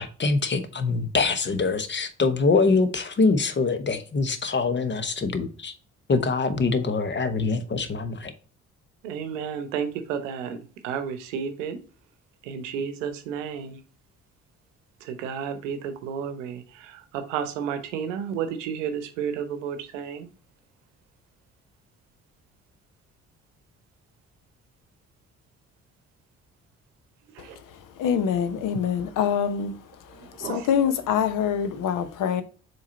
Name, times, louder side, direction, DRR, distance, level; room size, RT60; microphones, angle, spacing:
voice 1, 0.0-5.7 6.1-8.3, left 4 dB, 30° left, 1.0 m, -24 dB
voice 2, 9.0-10.6 10.8-11.8 12.4-13.8 15.0-20.3 27.3-27.6 30.1-30.7, right 7 dB, 70° right, 0.9 m, -32 dB
voice 3, 28.0-29.7 30.4-32.4, left 8 dB, 55° left, 0.9 m, -25 dB
7.2 x 3.1 x 4.2 m
figure-of-eight pair, 45°, 38 cm